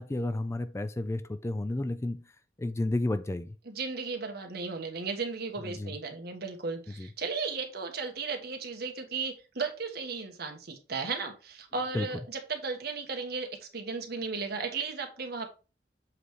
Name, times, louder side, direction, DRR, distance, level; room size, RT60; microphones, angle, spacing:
voice 1, 0.0-2.3 2.6-3.6 5.6-5.9 7.0-7.1 11.9-12.1, left 2 dB, 15° left, 0.4 m, -32 dB
voice 2, 3.7-15.5, right 4 dB, 60° right, 1.4 m, -35 dB
7.6 x 3.3 x 4.8 m
head